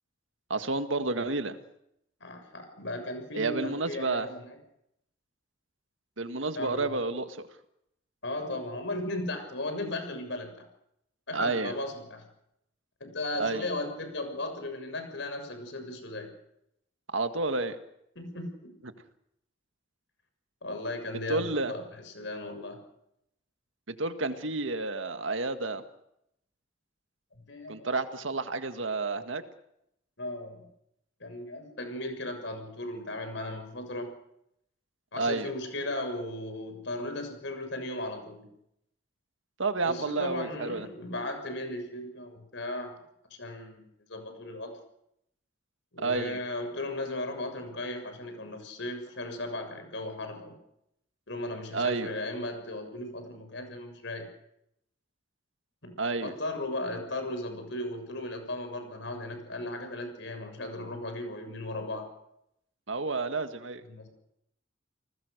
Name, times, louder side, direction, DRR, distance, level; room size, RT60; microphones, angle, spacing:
voice 1, 0.5-1.6 3.3-4.3 6.2-7.4 11.3-11.7 13.4-13.7 17.1-17.8 21.3-21.7 23.9-25.8 27.7-29.4 35.2-35.5 39.6-40.9 46.0-46.4 51.7-52.1 56.0-56.3 62.9-63.8, right 3 dB, 85° right, 8 dB, 1.9 m, -30 dB
voice 2, 2.2-4.6 6.5-7.0 8.2-10.5 11.3-12.2 13.0-16.3 18.1-18.7 20.6-22.8 27.5-27.9 30.2-30.6 31.2-34.1 35.1-38.5 39.8-42.9 43.3-44.7 45.9-50.6 51.3-54.3 55.8-55.9 56.2-62.1 63.9-64.1, left 1 dB, 70° left, 6 dB, 6.8 m, -36 dB
30.0 x 19.5 x 6.7 m, 0.79 s
head